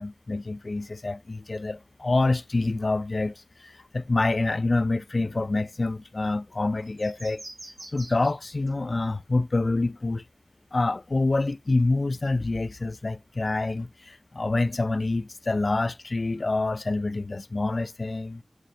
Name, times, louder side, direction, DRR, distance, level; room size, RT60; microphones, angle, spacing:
voice 1, 0.0-7.4 7.9-10.3 10.7-18.4, left 2 dB, 65° left, 0.3 m, -27 dB
sound 1, 6.8-8.7 9.0-9.1, right 2 dB, 75° right, 3.3 m, -45 dB
7.6 x 6.4 x 2.7 m
wide cardioid pair, 65°, 0 cm